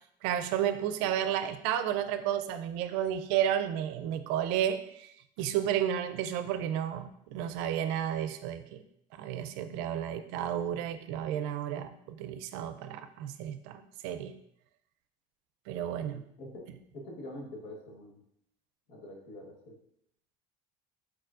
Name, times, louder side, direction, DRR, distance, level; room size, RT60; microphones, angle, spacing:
voice 1, 0.2-8.8 9.1-14.3 15.7-16.2, right 10 dB, 85° right, 10 dB, 0.4 m, -32 dB
voice 2, 16.1-18.2 18.9-19.8, left 1 dB, 75° left, 0 dB, 1.2 m, -46 dB
4.5 x 4.2 x 2.5 m, 0.72 s
cardioid pair, 120°, 17 cm